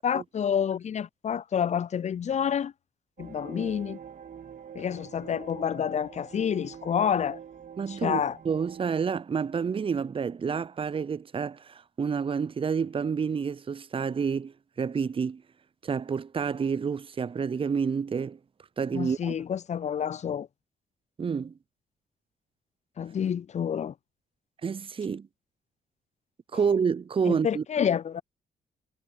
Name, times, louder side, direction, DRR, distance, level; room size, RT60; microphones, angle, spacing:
voice 1, 0.0-2.7 3.2-4.0 4.7-7.4 7.9-8.4 18.9-20.5 23.0-23.9 27.3-28.2, left 8 dB, 40° left, 0.5 m, -28 dB
sound 1, 3.2-9.0, right 8 dB, 45° right, 2.5 m, -45 dB
voice 2, 7.8-15.4 15.8-18.4 18.8-19.3 21.2-21.5 24.6-25.3 26.5-27.6, right 6 dB, 30° right, 0.6 m, -29 dB
hypercardioid pair, 40°, 18 cm